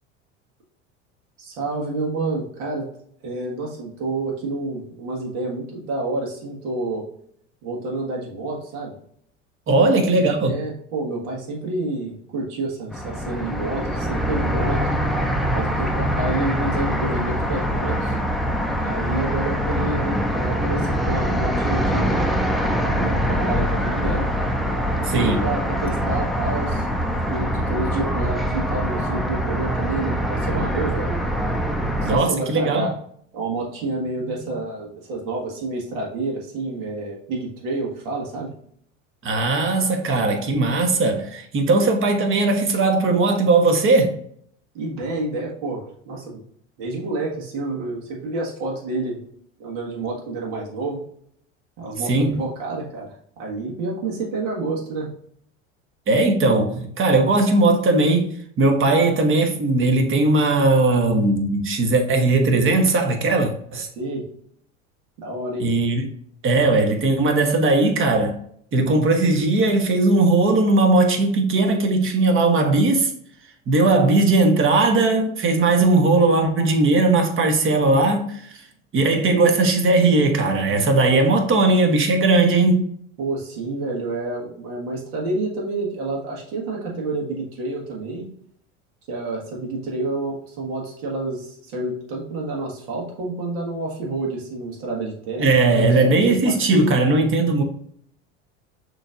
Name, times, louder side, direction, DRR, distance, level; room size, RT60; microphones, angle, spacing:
voice 1, 1.4-2.9 3.2-7.1 7.6-9.0 9.7-14.8 15.5-18.1 18.8-22.2 22.9-24.3 25.0-26.9 27.3-31.1 31.7-33.0 33.3-38.5 44.7-46.4 46.8-49.2 49.6-51.0 51.8-55.1 63.9-64.2 65.2-65.7 83.2-88.3 89.1-96.8, right 2 dB, 65° right, 1.7 m, -29 dB
voice 2, 9.7-10.5 25.1-25.4 32.0-32.9 39.2-44.2 52.1-52.4 56.1-63.9 65.6-66.1 66.4-68.4 68.7-73.1 73.7-78.6 78.9-82.9 95.4-97.6, right 2 dB, 30° right, 1.1 m, -18 dB
sound 1, 12.9-32.2, equal, ahead, 0.5 m, -23 dB
6.2 x 3.2 x 2.5 m
hypercardioid pair, 80°, 38 cm